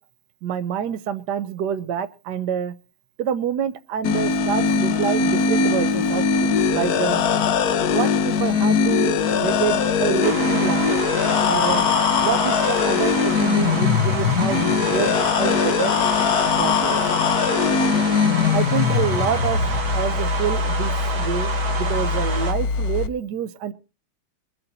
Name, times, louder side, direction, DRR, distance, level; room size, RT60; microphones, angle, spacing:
voice 1, 0.4-2.7 3.2-7.2 7.9-11.0 11.4-11.9 12.2-15.1 15.4-15.9 16.6-17.0 18.5-19.6 19.9-23.7, right 8 dB, 65° right, 11 dB, 1.3 m, -27 dB
sound 1, 4.0-23.1, left 6 dB, 60° left, 1.1 m, -21 dB
sound 2, 10.2-22.5, right 5 dB, 90° right, 2.6 m, -29 dB
22.5 x 7.9 x 4.2 m, 0.34 s
omnidirectional pair, 2.2 m